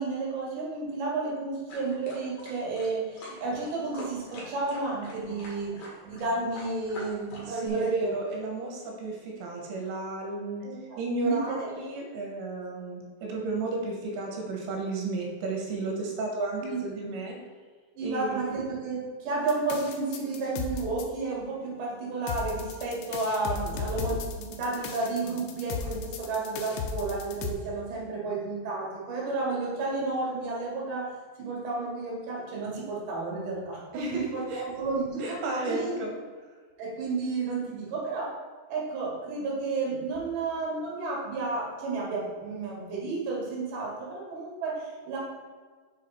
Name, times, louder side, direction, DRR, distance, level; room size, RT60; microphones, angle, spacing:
voice 1, 0.0-5.7 6.0-8.1 10.6-11.7 16.6-17.0 17.9-24.2 24.5-31.1 31.4-35.4 35.6-36.0 36.8-38.3 38.7-45.2, right 3 dB, 50° right, -4 dB, 2.9 m, -32 dB
sound 1, 1.7-7.7, left 1 dB, 60° left, 2.5 m, -44 dB
voice 2, 7.5-10.6 11.0-17.4 18.0-18.6 33.9-34.6 35.2-36.2, right 2 dB, 70° right, -1 dB, 3.1 m, -33 dB
sound 2, 19.5-21.0 22.3-27.5, left 5 dB, 85° left, 2.5 m, -35 dB
7.0 x 4.9 x 4.2 m, 1.5 s
omnidirectional pair, 5.9 m